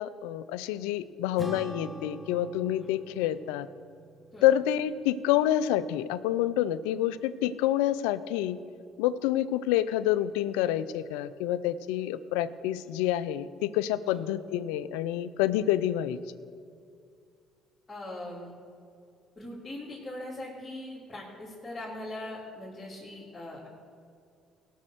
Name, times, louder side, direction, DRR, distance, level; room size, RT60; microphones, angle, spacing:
voice 1, 0.0-3.7 4.4-8.6 9.0-16.2, left 12 dB, 85° left, 16 dB, 0.4 m, -28 dB
Acoustic guitar / Strum, 1.4-6.1, right 1 dB, 5° left, 1.4 m, -45 dB
voice 2, 17.9-18.5 19.4-23.7, left 1 dB, 20° left, -7 dB, 3.2 m, -41 dB
17.0 x 6.3 x 6.5 m, 2.4 s
supercardioid pair, 65°, 0 cm